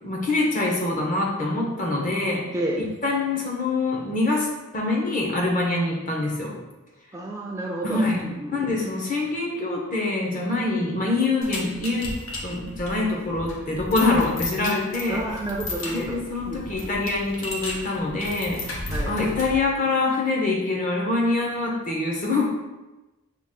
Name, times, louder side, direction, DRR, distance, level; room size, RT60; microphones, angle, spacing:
voice 1, 0.0-2.4 2.8-6.6 7.8-8.2 8.5-12.1 12.4-15.2 15.9-22.5, left 2 dB, 40° left, -1 dB, 0.8 m, -25 dB
voice 2, 7.1-8.7 15.1-16.2 16.5-16.6 18.9-19.1, right 1 dB, 15° right, -1 dB, 0.4 m, -30 dB
sound 1, 11.4-19.7, left 1 dB, 85° left, 0.8 m, -34 dB
5.8 x 2.4 x 3.7 m, 1.1 s
head